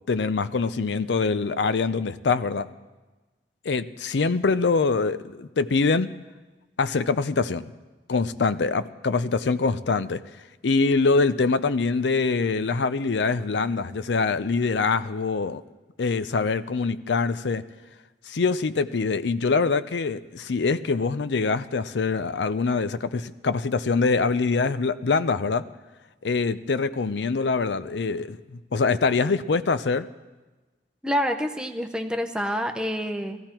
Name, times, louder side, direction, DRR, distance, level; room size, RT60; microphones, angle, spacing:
voice 1, 0.1-2.7 3.6-6.1 6.8-7.7 8.1-10.2 10.6-15.6 16.0-17.6 18.3-25.6 26.2-30.1, left 4 dB, 75° left, 13 dB, 0.5 m, -24 dB
voice 2, 31.0-33.4, equal, 5° right, 5 dB, 0.8 m, -27 dB
16.5 x 14.5 x 4.5 m, 1.2 s
head